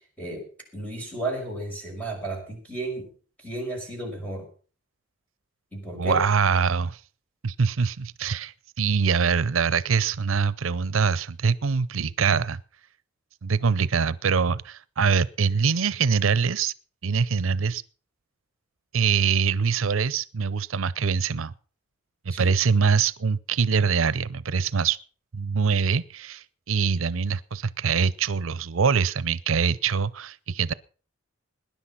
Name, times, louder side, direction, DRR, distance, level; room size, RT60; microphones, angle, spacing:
voice 1, 0.7-3.1 3.4-4.5 5.7-6.2 22.3-22.5, right 1 dB, 5° left, 5.7 m, -33 dB
voice 2, 6.0-7.0 7.4-12.6 13.4-16.7 17.0-17.8 18.9-21.5 22.3-25.0 25.3-30.7, right 5 dB, 85° right, 0.6 m, -24 dB
19.0 x 10.5 x 5.8 m
head